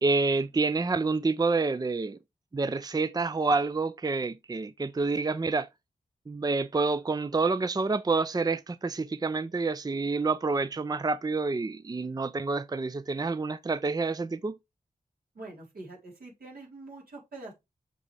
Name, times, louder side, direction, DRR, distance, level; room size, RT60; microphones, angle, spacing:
voice 1, 0.0-2.2 2.5-5.7 6.3-14.5, right 3 dB, 25° right, 0.5 m, -28 dB
voice 2, 15.3-17.5, right 2 dB, 85° right, 4.0 m, -44 dB
7.5 x 4.8 x 3.4 m
cardioid pair, 40°, 15 cm